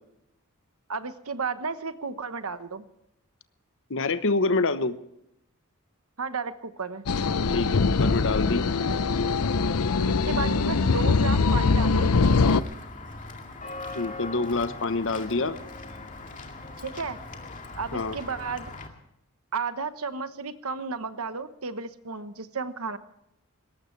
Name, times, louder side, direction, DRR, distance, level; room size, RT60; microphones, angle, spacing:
voice 1, 0.9-2.8 6.2-7.0 10.0-12.2 16.8-17.2 17.8-18.7 19.5-23.0, right 4 dB, 70° right, 11 dB, 1.1 m, -33 dB
voice 2, 3.9-5.0 7.5-8.6 13.9-15.6 17.9-18.2, left 3 dB, 60° left, 11 dB, 1.0 m, -26 dB
sound 1, 7.1-12.6, left 4 dB, 80° left, 0.7 m, -22 dB
Walk footsteps / Bell, 12.2-18.9, left 2 dB, 35° left, 2.2 m, -40 dB
21.5 x 18.5 x 3.3 m, 0.80 s
head